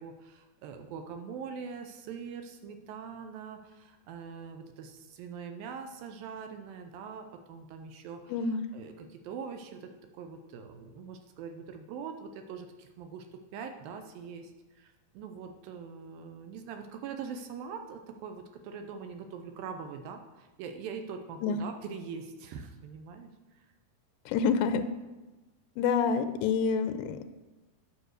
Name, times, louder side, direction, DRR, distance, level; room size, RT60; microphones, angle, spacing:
voice 1, 0.0-9.9 10.2-23.7, right 6 dB, 75° right, 6 dB, 2.3 m, -43 dB
voice 2, 8.3-8.7 21.4-21.6 24.3-24.9 25.8-27.3, left 5 dB, 90° left, 10 dB, 2.6 m, -27 dB
10.0 x 5.1 x 6.4 m, 1.1 s
omnidirectional pair, 4.5 m